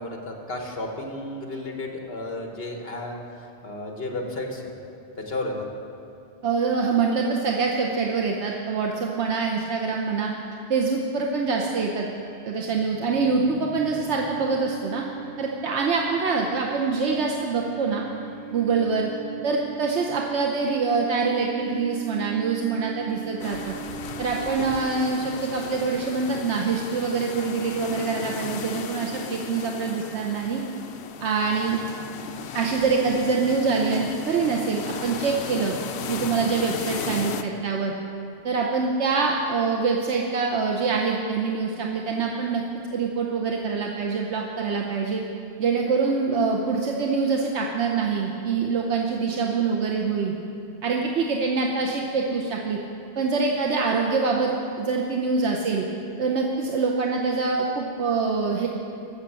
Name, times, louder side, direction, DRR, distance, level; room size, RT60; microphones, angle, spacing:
voice 1, 0.0-3.1 3.6-4.7 5.2-5.7, left 2 dB, 60° left, 2 dB, 1.6 m, -32 dB
voice 2, 6.4-10.3 10.7-12.1 12.4-15.0 15.4-18.0 18.5-19.1 19.4-23.7 24.2-30.6 31.2-31.8 32.5-35.7 36.1-37.9 38.4-42.6 42.9-45.2 45.6-50.3 50.8-52.8 53.2-55.8 56.2-58.7, right 4 dB, 80° right, 0 dB, 1.1 m, -25 dB
sound 1, 11.4-25.4, right 7 dB, 45° right, 1.3 m, -40 dB
sound 2, 23.4-37.4, left 7 dB, 75° left, 0.9 m, -36 dB
13.5 x 6.5 x 7.5 m, 2.7 s
omnidirectional pair, 1.2 m